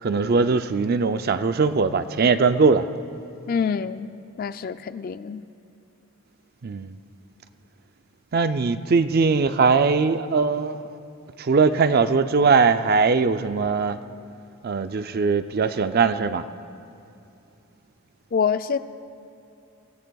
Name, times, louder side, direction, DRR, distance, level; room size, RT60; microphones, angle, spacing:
voice 1, 0.0-2.9 6.6-7.0 8.3-11.0 11.4-14.0 14.6-16.4, right 4 dB, 45° right, 0.4 m, -20 dB
voice 2, 3.5-4.1 4.4-5.4 18.3-18.8, left 6 dB, 40° left, 0.3 m, -25 dB
24.5 x 16.5 x 2.3 m
head